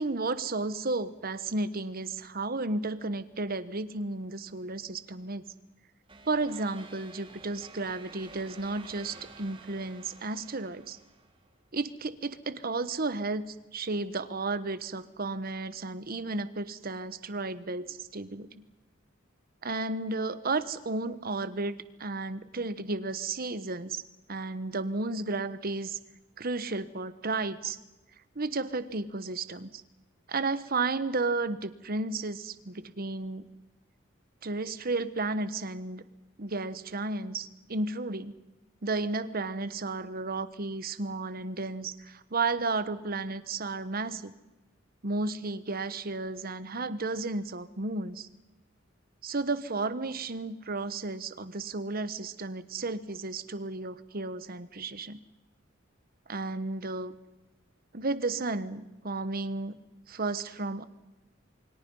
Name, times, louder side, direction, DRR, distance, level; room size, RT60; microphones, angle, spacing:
voice 1, 0.0-5.4 6.3-11.0 11.7-18.5 19.6-24.0 24.3-26.0 26.4-27.8 28.3-29.8 30.3-33.4 34.4-36.0 36.4-38.4 38.8-44.3 45.0-48.3 49.2-55.2 56.3-57.1 57.9-59.7 60.1-60.8, right 3 dB, 50° right, 13 dB, 1.3 m, -33 dB
sound 1, 6.1-11.6, right 3 dB, 30° right, 3.6 m, -51 dB
28.0 x 24.0 x 5.6 m, 1.0 s
head